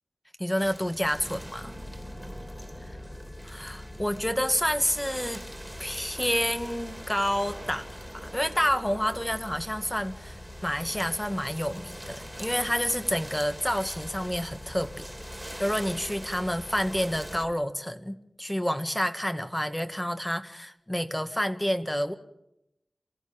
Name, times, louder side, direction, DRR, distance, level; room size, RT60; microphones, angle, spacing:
voice 1, 0.4-1.8 3.4-5.4 5.8-7.9 8.1-15.1 15.6-22.1, equal, 10° left, 8 dB, 2.0 m, -29 dB
sound 1, 0.6-17.4, right 1 dB, 10° right, 2.8 m, -44 dB
The Ghoulsomes, 1.1-17.5, left 1 dB, 45° left, 1.7 m, -46 dB
28.0 x 15.0 x 8.8 m, 0.85 s
wide cardioid pair, 60°, 0 cm